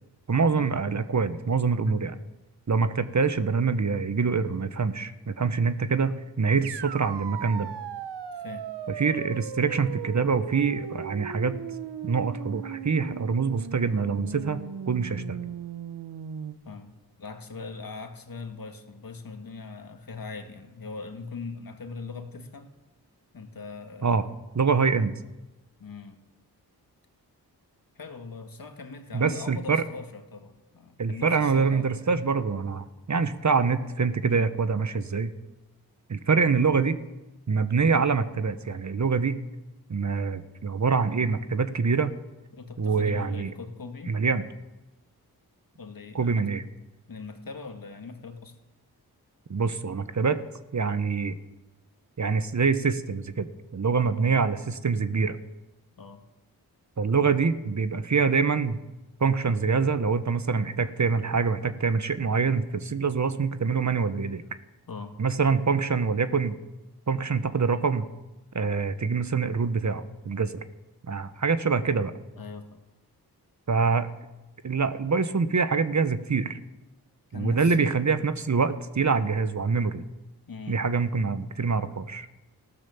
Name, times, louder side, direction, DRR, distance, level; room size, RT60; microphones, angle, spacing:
voice 1, 0.3-2.2 2.7-7.7 8.9-11.6 12.0-14.6 14.9-15.4 24.0-24.2 24.5-25.1 29.1-29.8 31.0-35.3 36.1-37.0 37.5-39.4 39.9-42.1 42.8-43.5 44.1-44.4 46.1-46.6 49.5-50.4 50.7-51.4 52.2-55.4 57.0-58.8 59.2-64.4 65.2-66.6 67.1-68.1 68.5-70.6 71.1-72.1 73.7-74.1 74.6-76.6 77.3-80.0 80.7-82.3, right 5 dB, 45° right, 12 dB, 1.2 m, -25 dB
sound 1, 6.6-16.5, right 9 dB, 90° right, 0.9 m, -37 dB
voice 2, 8.3-8.7 16.6-16.9 17.2-22.7 23.3-24.2 25.8-26.2 28.0-32.2 34.3-34.5 42.5-44.1 45.8-46.5 47.1-48.6 54.2-54.4 56.0-56.2 64.9-65.2 72.4-72.8 77.3-78.0 80.5-80.9, left 4 dB, 55° left, 6 dB, 2.1 m, -40 dB
15.0 x 12.5 x 7.1 m, 1.0 s
cardioid pair, 50°, 40 cm